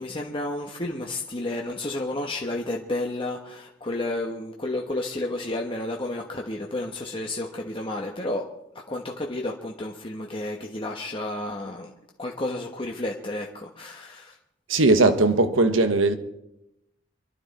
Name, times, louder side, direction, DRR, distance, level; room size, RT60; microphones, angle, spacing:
voice 1, 0.0-8.4 8.9-11.9 12.2-14.4, left 2 dB, 25° left, 1.2 m, -31 dB
voice 2, 14.7-16.1, right 2 dB, 90° right, 1.4 m, -19 dB
27.0 x 12.0 x 4.2 m
head